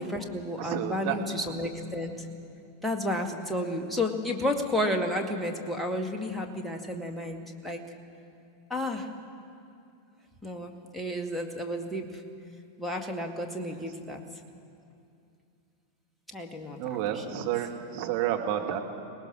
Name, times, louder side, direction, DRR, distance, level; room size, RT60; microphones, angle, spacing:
voice 1, 0.0-2.1 2.8-7.8 8.7-9.1 10.4-12.1 12.8-14.2 16.3-17.2, left 1 dB, ahead, 2 dB, 1.9 m, -32 dB
voice 2, 0.6-1.2 16.8-18.8, right 11 dB, 45° right, 2 dB, 1.9 m, -30 dB
23.0 x 19.0 x 6.2 m, 2.6 s
figure-of-eight pair, 90°, 0 cm